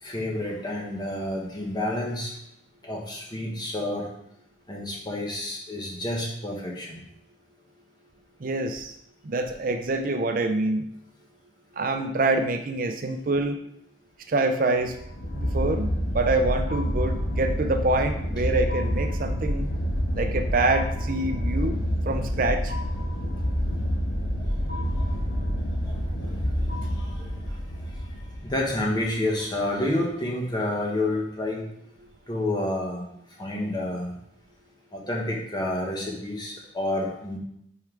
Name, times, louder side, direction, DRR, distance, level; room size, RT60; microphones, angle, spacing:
voice 1, 0.0-2.3 2.8-4.1 4.7-7.0 24.7-25.1 25.8-26.4 26.8-28.1 28.4-31.7 32.3-33.0 33.4-34.1 34.9-37.4, left 1 dB, 25° left, -2 dB, 1.3 m, -29 dB
voice 2, 8.4-8.9 9.2-10.9 11.8-13.6 14.3-14.9 15.3-19.7 20.1-21.8 22.1-22.7, right 2 dB, 45° right, 6 dB, 0.5 m, -26 dB
sound 1, 14.8-29.0, equal, 50° left, 1.5 m, -28 dB
5.5 x 4.4 x 4.7 m, 0.73 s
head